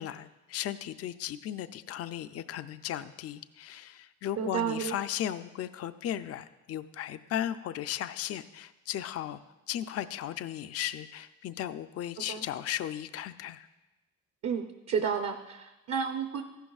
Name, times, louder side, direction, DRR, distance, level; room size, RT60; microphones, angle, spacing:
voice 1, 0.0-9.4 9.7-13.7, left 11 dB, 55° left, 12 dB, 0.4 m, -36 dB
voice 2, 4.4-5.0 12.2-12.4 14.4-16.4, right 7 dB, 55° right, 5 dB, 0.7 m, -31 dB
14.0 x 11.5 x 2.4 m, 1.1 s
cardioid pair, 90°, 30 cm